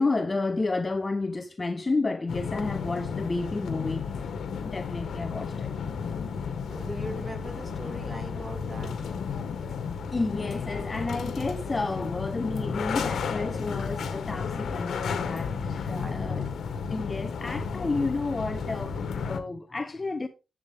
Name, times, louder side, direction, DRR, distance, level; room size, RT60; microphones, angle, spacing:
voice 1, 0.0-4.3 4.6-5.7 10.1-16.5 16.9-20.3, left 3 dB, 25° left, 0.7 m, -31 dB
sound 1, 2.3-19.4, left 6 dB, 75° left, 1.4 m, -33 dB
voice 2, 6.7-8.9 15.5-16.6 18.0-18.1, right 1 dB, 10° right, 2.4 m, -40 dB
10.5 x 8.3 x 3.4 m
wide cardioid pair, 115°, 0 cm